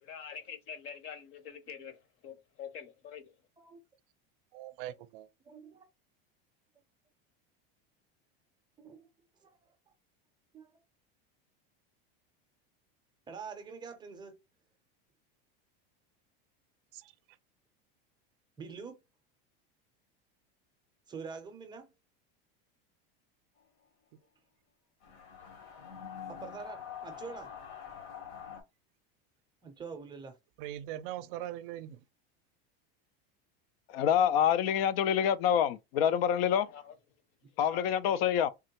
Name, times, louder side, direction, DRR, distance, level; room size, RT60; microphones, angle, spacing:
voice 1, 0.0-3.3 36.7-36.9 37.7-38.4, left 7 dB, 45° left, 0.8 m, -45 dB
voice 2, 4.5-5.3 16.9-17.1 24.1-24.2 30.6-32.0, right 13 dB, 65° right, 0.5 m, -41 dB
voice 3, 5.4-5.9 8.8-9.1 9.4-9.7 10.5-10.8 13.3-14.4 18.6-19.0 21.1-21.9 26.3-27.5 29.6-30.4, right 5 dB, 15° right, 0.5 m, -45 dB
sound 1, 25.0-28.6, left 8 dB, 65° left, 1.1 m, -45 dB
voice 4, 33.9-36.7 37.6-38.5, left 9 dB, 85° left, 0.5 m, -26 dB
3.6 x 2.1 x 2.8 m
supercardioid pair, 150°, 29 cm